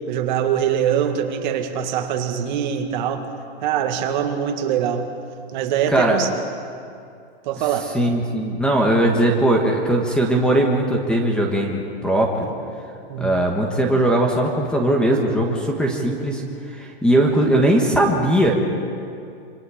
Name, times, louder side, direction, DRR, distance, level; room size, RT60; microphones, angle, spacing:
voice 1, 0.0-3.3 3.6-5.1 5.5-6.3 7.4-7.9 12.4-12.6 13.1-13.3, right 9 dB, 45° right, 5 dB, 1.8 m, -23 dB
voice 2, 5.9-6.2 7.9-12.5 13.2-16.4 16.7-18.5, right 1 dB, 5° left, 1 dB, 1.4 m, -19 dB
27.0 x 25.0 x 5.0 m, 2.4 s
supercardioid pair, 165°, 32 cm